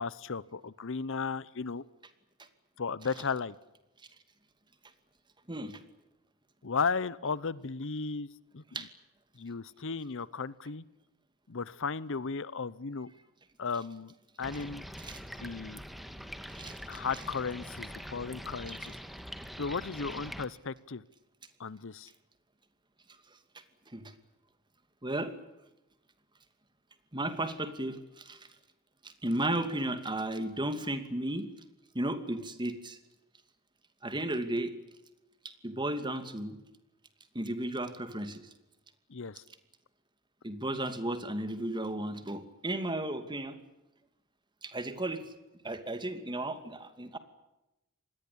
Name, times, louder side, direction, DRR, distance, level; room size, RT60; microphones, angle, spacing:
voice 1, 0.0-1.8 2.8-3.5 6.6-8.3 8.5-8.6 9.4-10.8 11.5-13.1 13.6-14.8 15.4-15.8 16.9-18.8 19.6-21.0 21.6-22.1 39.1-39.4, left 5 dB, 60° left, 19 dB, 0.8 m, -35 dB
voice 2, 5.5-5.8 8.7-8.9 15.0-15.2 16.5-17.0 23.9-24.1 25.0-25.3 27.1-28.4 29.0-31.5 31.9-33.0 34.0-34.7 35.4-36.6 37.3-38.4 40.4-43.6 44.6-45.2 45.6-47.2, right 1 dB, 20° right, 10 dB, 2.5 m, -34 dB
sound 1, 14.4-20.5, equal, ahead, 1.8 m, -44 dB
27.0 x 20.5 x 8.7 m, 0.94 s
head